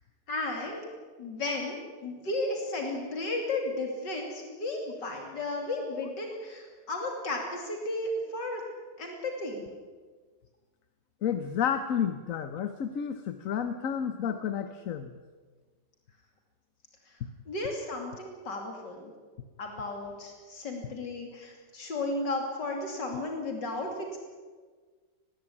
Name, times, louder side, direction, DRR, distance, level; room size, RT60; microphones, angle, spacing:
voice 1, 0.3-0.8 1.2-8.6 9.0-9.7 17.5-19.1 19.6-24.2, left 2 dB, 85° left, 2 dB, 3.4 m, -34 dB
voice 2, 11.2-15.1, left 8 dB, 55° left, 9 dB, 1.2 m, -31 dB
20.0 x 16.0 x 9.9 m, 1.4 s
omnidirectional pair, 1.9 m